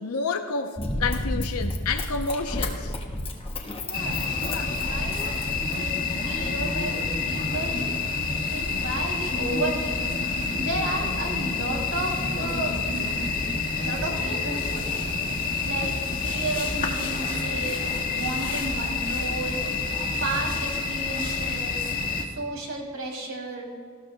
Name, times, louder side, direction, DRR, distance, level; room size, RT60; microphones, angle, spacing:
voice 1, 0.0-3.0 4.5-4.7, left 4 dB, 85° left, 5 dB, 0.7 m, -29 dB
Run, 0.8-6.0 6.6-6.7, left 1 dB, 25° left, 1.1 m, -32 dB
voice 2, 3.8-5.4 5.7-7.9 8.5-10.0 10.6-13.1 13.8-15.1 15.6-19.6 20.2-21.9 22.3-23.7, right 2 dB, 65° right, 0 dB, 2.7 m, -33 dB
sound 1, 3.9-22.3, left 4 dB, 40° left, 1.6 m, -28 dB
19.0 x 14.5 x 2.2 m, 2.1 s
head